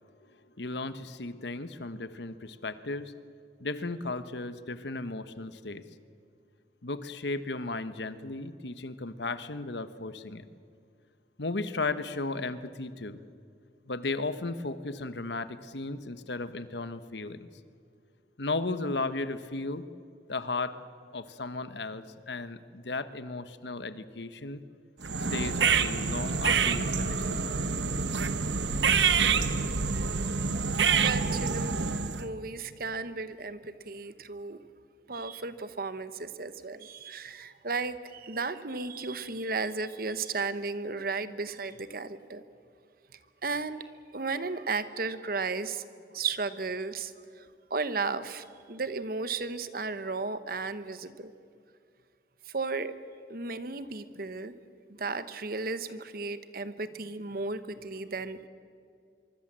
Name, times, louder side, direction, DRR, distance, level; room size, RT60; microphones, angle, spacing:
voice 1, 0.6-3.1 3.6-5.8 6.8-10.4 11.4-13.2 13.9-17.5 18.4-19.8 20.3-20.8 21.1-24.6 25.3-27.5 29.5-29.7, left 3 dB, 70° left, 12 dB, 1.2 m, -35 dB
sound 1, 25.0-32.3, right 5 dB, 80° right, 1.1 m, -27 dB
voice 2, 30.9-31.9 32.2-34.6 35.1-42.4 43.4-43.8 44.1-45.8 46.1-51.3 52.5-52.9 53.3-54.5 54.9-58.5, right 4 dB, 55° right, 12 dB, 1.1 m, -34 dB
24.5 x 24.0 x 7.6 m, 2.3 s
head